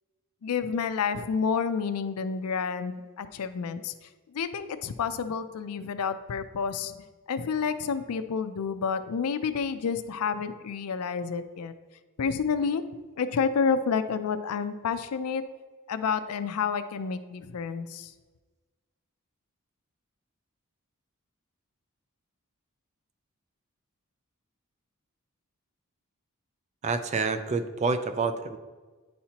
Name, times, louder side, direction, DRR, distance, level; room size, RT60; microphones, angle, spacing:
voice 1, 0.4-3.9 4.3-11.7 12.2-12.8 13.2-15.4 15.9-18.1, left 6 dB, 80° left, 11 dB, 0.4 m, -29 dB
voice 2, 26.8-28.6, right 4 dB, 30° right, 9 dB, 0.3 m, -28 dB
9.4 x 4.3 x 2.9 m, 1.3 s
head